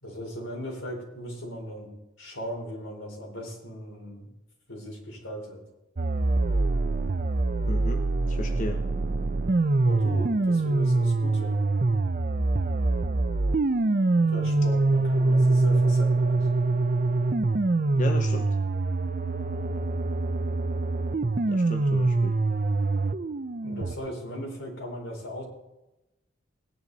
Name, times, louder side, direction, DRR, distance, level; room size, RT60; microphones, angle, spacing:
voice 1, 0.0-1.9 2.2-4.3 4.7-5.6 9.8-11.6 14.2-16.4 23.6-25.4, equal, 90° left, -1 dB, 4.3 m, -38 dB
sound 1, 6.0-24.0, right 2 dB, 45° right, 0.6 m, -24 dB
voice 2, 7.7-8.8 18.0-18.5 21.5-22.3, left 2 dB, 40° left, 6 dB, 0.7 m, -35 dB
18.5 x 10.0 x 4.1 m, 0.98 s
head